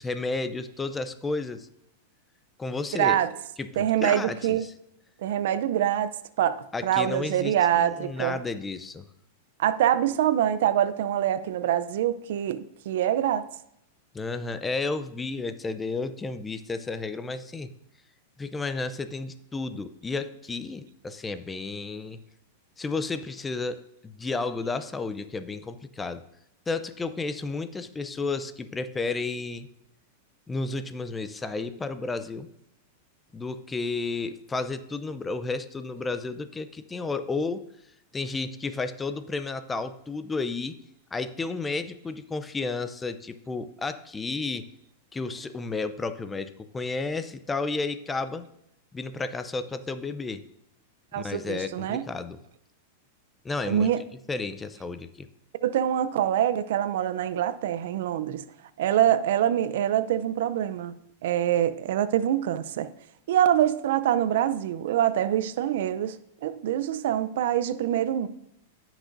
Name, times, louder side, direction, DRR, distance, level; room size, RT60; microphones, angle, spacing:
voice 1, 0.0-1.7 2.6-3.2 3.6-4.7 6.7-9.0 14.1-17.7 18.4-22.2 22.8-26.2 26.7-29.7 30.5-32.5 33.3-37.6 38.1-40.8 41.1-44.7 45.1-48.5 48.9-50.4 51.2-52.4 53.4-53.9 54.3-55.3, left 3 dB, 15° left, 11 dB, 0.5 m, -32 dB
voice 2, 2.9-3.3 3.8-4.7 5.2-8.4 9.6-13.5 51.1-52.0 53.7-54.0 55.6-58.4 58.8-60.9 61.2-62.9 63.3-66.2 66.4-68.3, right 11 dB, 70° right, 14 dB, 0.5 m, -25 dB
15.0 x 6.1 x 2.6 m, 0.77 s
hypercardioid pair, 125°, 0 cm